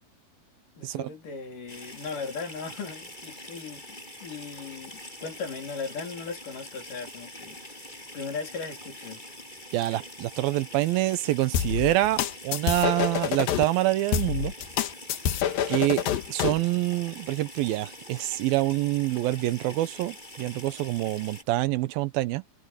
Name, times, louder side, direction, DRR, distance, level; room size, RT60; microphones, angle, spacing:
voice 1, 0.8-9.2, left 5 dB, 60° left, 5.2 m, -38 dB
sound 1, 1.7-21.4, left 1 dB, 10° left, 8.2 m, -44 dB
voice 2, 9.7-14.5 15.7-16.0 16.3-22.4, right 16 dB, 80° right, 2.6 m, -26 dB
sound 2, 11.5-13.6 14.1-16.6, left 10 dB, 80° left, 3.1 m, -27 dB
omnidirectional pair, 4.2 m